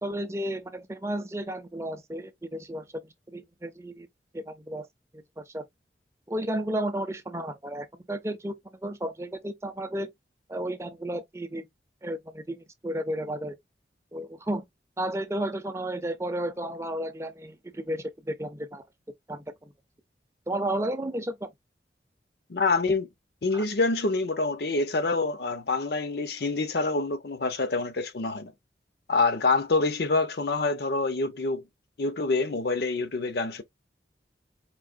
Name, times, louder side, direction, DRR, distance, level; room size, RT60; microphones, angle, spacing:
voice 1, 0.0-4.1 4.3-4.9 5.1-5.6 6.3-10.1 10.5-11.7 12.0-13.5 14.1-14.6 15.0-18.8 19.3-19.7 20.5-21.5 23.5-23.6, right 1 dB, 15° right, 0.5 m, -33 dB
voice 2, 22.5-23.1 23.4-28.5 29.1-31.6 32.0-33.6, left 3 dB, 65° left, 0.6 m, -26 dB
4.7 x 2.8 x 2.4 m
head